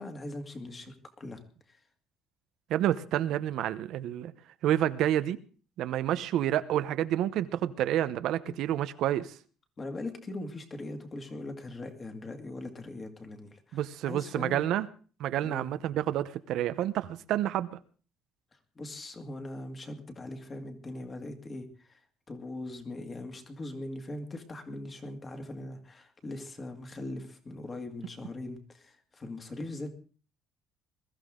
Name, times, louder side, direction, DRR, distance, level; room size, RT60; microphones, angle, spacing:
voice 1, 0.0-1.4 1.7-1.8 8.5-8.6 9.8-14.6 15.4-15.7 18.8-22.0 22.3-29.9, left 2 dB, 25° left, 2.1 m, -41 dB
voice 2, 2.7-4.3 4.6-5.4 5.8-9.3 13.7-14.9 15.2-17.7, right 12 dB, 65° right, 0.8 m, -29 dB
21.5 x 14.0 x 3.8 m
cardioid pair, 155°, 0 cm